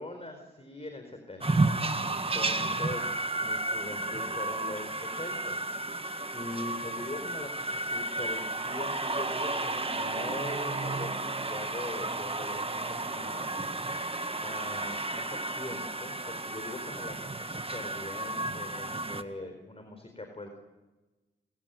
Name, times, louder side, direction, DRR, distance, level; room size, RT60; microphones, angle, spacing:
voice 1, 0.0-13.6 13.9-20.5, left 2 dB, 30° left, 6 dB, 4.4 m, -42 dB
sound 1, 1.4-19.2, right 2 dB, 30° right, 1.7 m, -32 dB
29.0 x 16.5 x 9.3 m, 1.2 s
cardioid pair, 45°, 20 cm